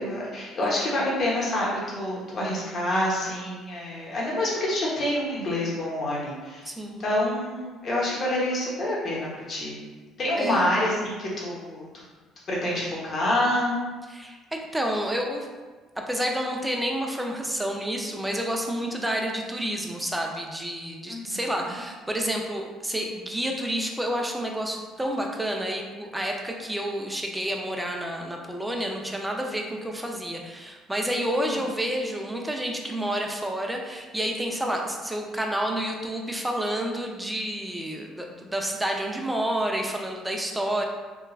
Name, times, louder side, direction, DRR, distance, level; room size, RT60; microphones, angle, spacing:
voice 1, 0.0-9.8 10.2-11.9 12.5-13.8 21.1-21.4 31.3-31.4, left 1 dB, 45° left, -5 dB, 0.9 m, -27 dB
voice 2, 0.6-0.9 6.6-7.0 10.4-10.7 14.1-15.5 16.0-40.8, right 1 dB, 5° right, 1 dB, 0.4 m, -29 dB
2.9 x 2.3 x 2.3 m, 1.3 s
cardioid pair, 90°, 0 cm